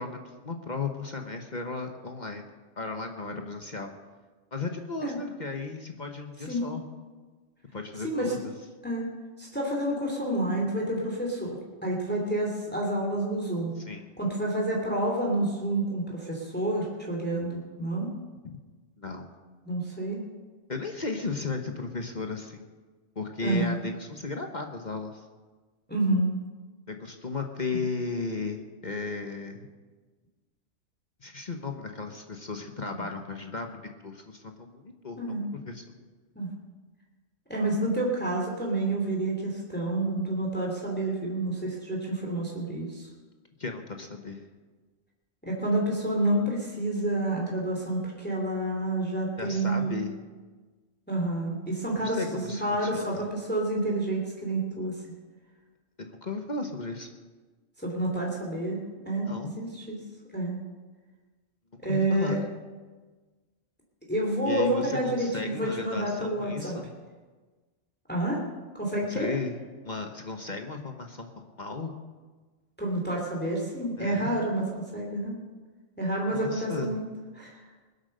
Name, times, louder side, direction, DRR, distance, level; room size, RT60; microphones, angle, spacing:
voice 1, 0.0-2.5 2.8-3.9 4.5-6.8 7.7-8.4 13.8-14.1 19.0-19.3 20.7-22.7 23.1-25.3 26.9-29.7 31.2-35.9 43.6-44.4 49.4-50.1 52.0-53.2 56.0-57.1 59.3-59.6 61.9-62.4 64.4-66.9 69.1-71.3 71.6-71.9 74.0-74.3 76.3-76.9, left 3 dB, 35° left, 4 dB, 1.2 m, -35 dB
voice 2, 9.4-13.7 14.2-18.1 19.6-20.2 23.4-23.8 25.9-26.4 27.7-27.9 33.0-33.1 35.2-35.4 36.4-36.5 37.5-43.1 45.4-49.9 51.1-55.0 57.8-58.8 59.0-60.0 60.3-60.6 61.8-62.4 64.1-66.8 68.1-68.4 68.7-69.3 72.8-75.3 76.0-77.0 77.4-77.6, right 1 dB, 5° left, -2 dB, 2.8 m, -29 dB
21.5 x 8.1 x 6.6 m, 1.3 s
omnidirectional pair, 1.3 m